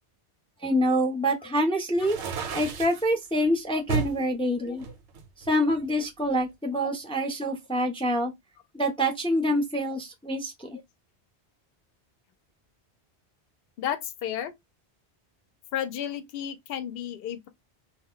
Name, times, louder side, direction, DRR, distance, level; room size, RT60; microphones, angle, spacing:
voice 1, 0.6-2.2 2.5-4.8 5.5-8.3 8.7-10.8, equal, 10° left, 0.3 m, -26 dB
sound 1, 2.0-3.0 3.9-4.2 4.8-5.9, right 7 dB, 90° right, 0.9 m, -32 dB
voice 2, 13.8-14.5 15.7-17.5, left 10 dB, 65° left, 0.7 m, -33 dB
2.2 x 2.1 x 3.6 m
omnidirectional pair, 1.1 m